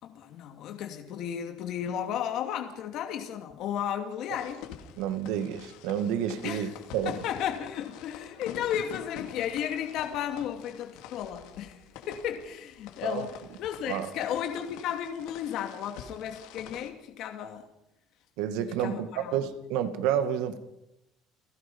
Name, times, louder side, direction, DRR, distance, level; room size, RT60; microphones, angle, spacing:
voice 1, 0.0-4.6 6.4-6.7 7.0-17.6 18.8-19.4, left 9 dB, 55° left, 4 dB, 2.4 m, -34 dB
sound 1, 4.4-16.9, left 9 dB, 80° left, 2.7 m, -47 dB
voice 2, 5.0-7.2 13.0-13.3 13.9-14.1 18.4-20.6, right 9 dB, 85° right, 10 dB, 2.2 m, -30 dB
30.0 x 16.5 x 5.5 m, 0.83 s
cardioid pair, 165°, 0 cm